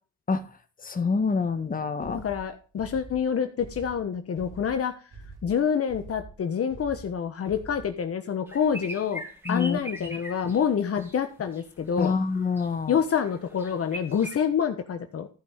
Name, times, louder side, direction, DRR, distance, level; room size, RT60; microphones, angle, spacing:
voice 1, 0.8-2.2 9.4-10.2 11.0-11.1 12.0-13.0, left 4 dB, 30° left, 9 dB, 1.5 m, -27 dB
sound 1, 2.0-8.1, right 3 dB, 90° right, 4.9 m, -46 dB
voice 2, 2.1-4.9 5.4-9.2 9.5-12.1 12.9-15.3, left 7 dB, 50° left, 7 dB, 1.2 m, -27 dB
sound 2, 8.5-11.2 11.5-12.7 13.0-14.3, equal, 5° right, 2.9 m, -41 dB
14.0 x 5.5 x 6.5 m, 0.37 s
cardioid pair, 90°, 30 cm